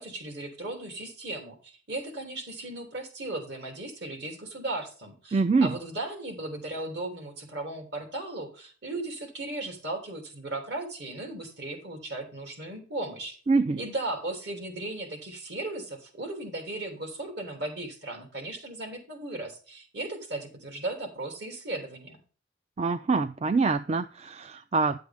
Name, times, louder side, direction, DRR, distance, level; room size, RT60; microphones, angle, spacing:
voice 1, 0.0-13.4 13.8-22.2, right 2 dB, 60° right, 3.0 m, -36 dB
voice 2, 5.3-5.7 13.5-13.8 22.8-25.0, right 4 dB, 35° right, 0.4 m, -25 dB
10.5 x 7.5 x 3.5 m
head